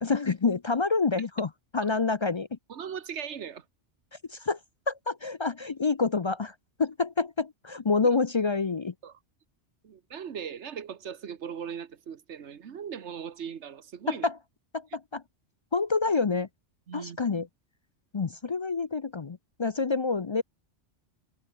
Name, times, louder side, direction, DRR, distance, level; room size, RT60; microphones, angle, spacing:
voice 1, 0.0-2.6 4.3-4.6 4.9-8.9 14.1-14.4 14.7-15.2 15.7-16.5 16.9-17.5 18.1-20.4, left 4 dB, 40° left, 0.4 m, -27 dB
voice 2, 2.7-3.6 9.0-9.1 9.8-14.3 16.9-17.2, right 8 dB, 70° right, 1.4 m, -39 dB
omnidirectional pair, 1.2 m